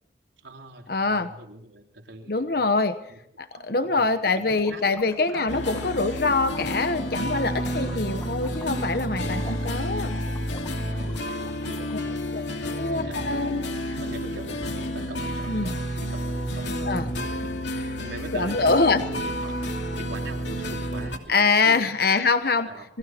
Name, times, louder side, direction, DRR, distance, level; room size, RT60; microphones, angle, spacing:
voice 1, 0.4-2.7 3.1-5.0 5.3-5.5 7.7-8.4 10.8-19.7 20.0-21.9 22.6-22.9, right 2 dB, 75° right, 2 dB, 3.7 m, -43 dB
voice 2, 0.9-1.3 2.3-3.0 3.4-10.1 12.3-12.4 12.8-14.0 15.5-15.7 16.9-17.0 18.3-19.0 21.3-22.7 22.9-23.0, left 3 dB, 55° left, 9 dB, 1.0 m, -24 dB
Gurgling / Liquid, 4.4-12.1, left 1 dB, 15° left, 1.3 m, -45 dB
sound 1, 5.5-21.2, equal, 70° left, 2.8 m, -30 dB
sound 2, 14.3-19.7, right 1 dB, 5° right, 4.5 m, -54 dB
27.5 x 21.5 x 4.5 m, 0.71 s
head